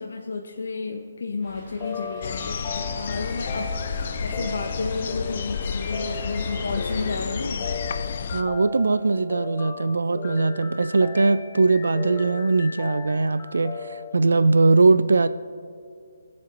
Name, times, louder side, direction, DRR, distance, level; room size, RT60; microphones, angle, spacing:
voice 1, 0.0-7.7, left 4 dB, 70° left, 2 dB, 0.8 m, -32 dB
sound 1, 1.4-7.3, right 1 dB, 20° right, 2.1 m, -46 dB
sound 2, 1.8-14.1, left 4 dB, 20° left, 1.0 m, -37 dB
sound 3, 2.2-8.4, left 6 dB, 40° left, 0.5 m, -31 dB
voice 2, 8.3-15.3, right 3 dB, 80° right, 14 dB, 0.4 m, -20 dB
22.0 x 7.4 x 3.0 m, 2.2 s
hypercardioid pair, 165°, 0 cm